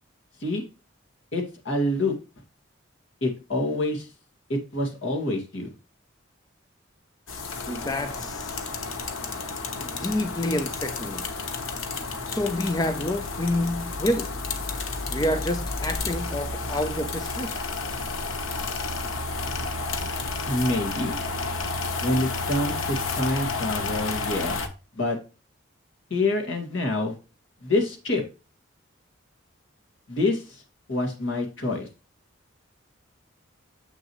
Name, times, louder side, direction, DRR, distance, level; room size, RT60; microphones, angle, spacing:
voice 1, 1.3-2.2 3.2-4.1 4.5-5.7 20.5-21.2 22.0-24.6 25.0-25.2 26.1-27.1 27.6-28.2 30.1-30.6 30.9-31.9, left 2 dB, 70° left, 2.1 m, -26 dB
sound 1, 7.3-24.7, left 3 dB, 85° left, 1.0 m, -31 dB
voice 2, 7.7-8.7 9.8-11.3 12.3-14.3 15.1-17.5, left 1 dB, 20° left, 0.5 m, -28 dB
7.4 x 6.4 x 3.1 m
head